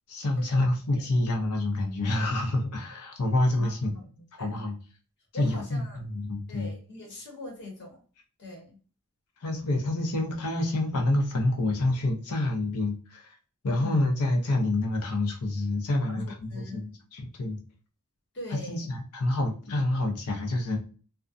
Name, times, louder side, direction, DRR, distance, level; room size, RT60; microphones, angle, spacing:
voice 1, 0.1-3.9 4.4-4.8 5.4-6.7 9.4-13.4 13.6-17.6 18.5-20.8, left 2 dB, 80° left, 3 dB, 0.7 m, -27 dB
voice 2, 3.6-4.6 5.3-6.1 6.5-8.0 8.4-8.8 13.7-14.0 16.1-16.9 18.3-18.9, left 2 dB, 50° left, 0 dB, 1.0 m, -42 dB
2.4 x 2.1 x 2.5 m, 0.37 s
head